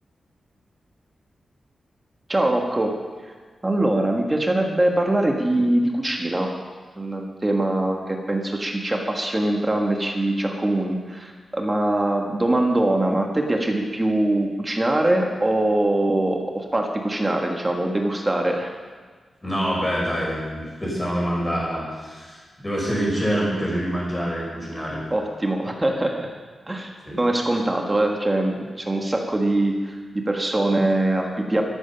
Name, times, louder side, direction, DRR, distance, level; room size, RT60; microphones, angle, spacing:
voice 1, 2.3-3.0 3.6-6.5 7.0-18.7 25.1-26.3 26.7-26.9 27.2-31.6, right 1 dB, 15° right, 1 dB, 1.4 m, -23 dB
voice 2, 19.4-25.0 27.0-27.2, equal, 15° left, -4 dB, 5.3 m, -26 dB
13.0 x 13.0 x 5.7 m, 1.5 s
wide cardioid pair, 160°, 0 cm